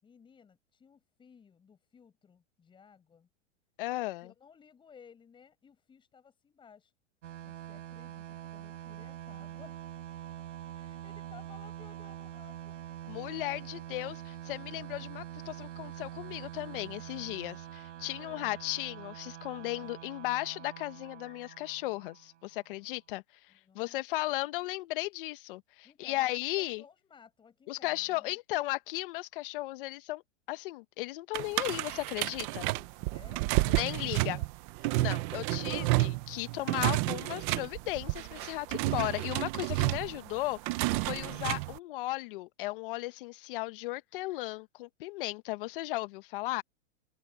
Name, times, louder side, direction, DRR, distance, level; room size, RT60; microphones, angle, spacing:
voice 1, 0.0-3.3 4.2-6.9 7.4-9.8 10.7-12.8 18.1-18.5 19.8-19.9 23.5-24.0 25.8-28.4 31.5-31.6 32.4-34.5 41.3-41.5, left 6 dB, 15° left, 6.8 m, -57 dB
voice 2, 3.8-4.3 13.1-23.2 23.7-26.8 27.7-30.2 30.5-32.6 33.6-34.4 35.0-46.6, left 19 dB, 45° left, 1.3 m, -36 dB
sound 1, 7.2-22.6, right 12 dB, 75° right, 5.9 m, -45 dB
sound 2, 31.3-41.8, right 20 dB, 25° right, 0.6 m, -31 dB
supercardioid pair, 160°, 37 cm